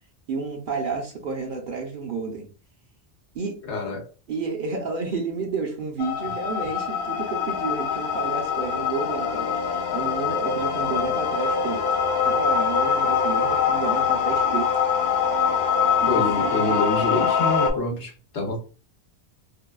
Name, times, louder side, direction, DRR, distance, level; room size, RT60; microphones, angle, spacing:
voice 1, 0.3-2.5 3.3-3.6 4.3-14.7 16.0-16.8, right 4 dB, 60° right, 0.6 m, -31 dB
voice 2, 3.7-4.1 16.1-18.6, left 2 dB, 80° left, 1.1 m, -27 dB
sound 1, 6.0-17.7, left 6 dB, 60° left, 0.7 m, -23 dB
2.6 x 2.2 x 2.2 m
omnidirectional pair, 1.2 m